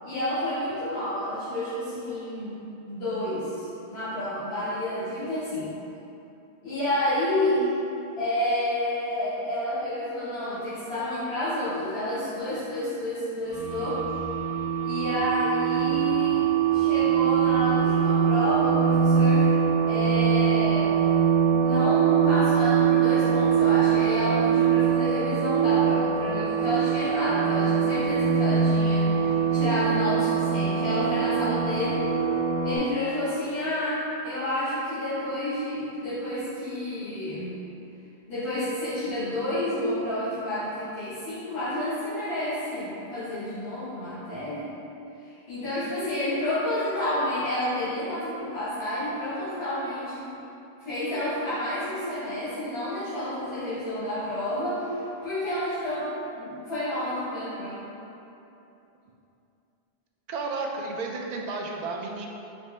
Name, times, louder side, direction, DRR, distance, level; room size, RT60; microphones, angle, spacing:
voice 1, 0.0-5.7 6.6-7.8 8.2-14.0 14.8-19.6 19.9-21.0 21.5-32.1 32.6-37.5 38.3-44.7 45.2-50.3 50.8-57.8, left 1 dB, 65° left, -14 dB, 1.6 m, -30 dB
sound 1, 13.5-32.8, right 7 dB, 30° left, 0.7 m, -23 dB
voice 2, 60.3-62.3, right 3 dB, 55° right, 0 dB, 0.5 m, -32 dB
5.2 x 2.1 x 4.1 m, 2.8 s
omnidirectional pair, 1.1 m